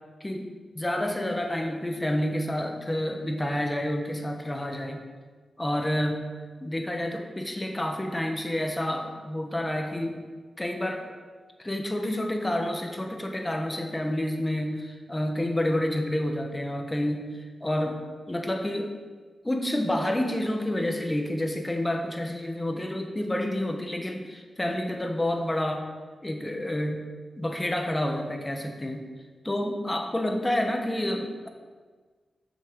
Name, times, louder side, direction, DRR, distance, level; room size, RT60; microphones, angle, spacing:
voice 1, 0.7-5.0 5.6-6.2 6.6-10.2 10.6-11.1 11.6-18.9 19.4-25.9 26.2-27.1 27.4-29.0 29.4-31.5, left 1 dB, 15° left, 4 dB, 1.2 m, -29 dB
8.4 x 6.5 x 6.2 m, 1.4 s
wide cardioid pair, 95°, 0 cm